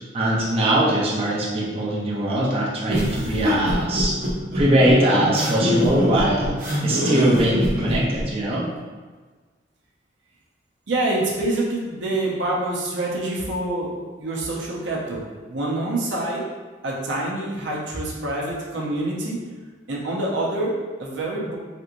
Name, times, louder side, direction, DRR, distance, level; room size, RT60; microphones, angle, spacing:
voice 1, 0.1-4.2 4.5-8.6, right 1 dB, 30° right, -5 dB, 0.5 m, -21 dB
sound 1, 2.9-8.2, left 1 dB, 50° right, 0.9 m, -24 dB
voice 2, 10.9-16.4 16.8-19.4 19.9-21.6, right 2 dB, 85° right, -3 dB, 0.7 m, -26 dB
3.4 x 2.9 x 2.5 m, 1.4 s
head